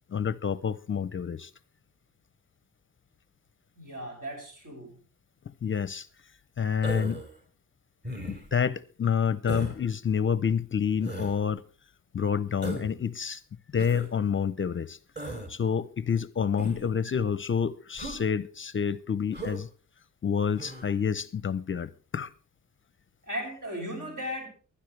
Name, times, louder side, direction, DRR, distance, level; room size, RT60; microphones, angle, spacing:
voice 1, 0.1-1.5 5.6-6.1 6.6-7.2 8.2-11.6 12.1-13.4 13.7-15.0 15.3-19.7 20.2-22.3, left 7 dB, 35° left, 0.5 m, -28 dB
voice 2, 3.8-5.0 23.3-24.5, equal, 65° right, 6.0 m, -36 dB
Human voice, 6.8-7.3 8.0-8.6 9.5-9.8 11.0-11.4 12.6-13.0 13.8-14.1 15.2-15.5 16.6-16.9 18.0-18.2 19.3-19.6 20.6-20.9, right 1 dB, 30° right, 3.1 m, -37 dB
23.0 x 10.0 x 3.2 m
wide cardioid pair, 145°, 34 cm